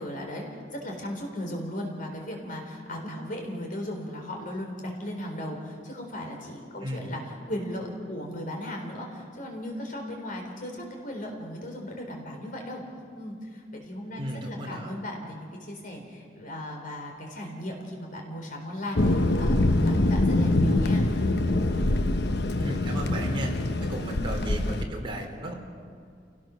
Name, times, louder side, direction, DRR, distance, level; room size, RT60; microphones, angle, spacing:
voice 1, 0.0-12.8 13.1-21.0, left 1 dB, 50° left, 1 dB, 3.9 m, -37 dB
voice 2, 14.2-14.9 22.6-23.5 23.8-25.5, equal, 30° right, 0 dB, 3.7 m, -34 dB
Thunder, 18.9-24.9, left 2 dB, 65° left, 0.9 m, -24 dB
28.0 x 18.0 x 6.4 m, 2.2 s
head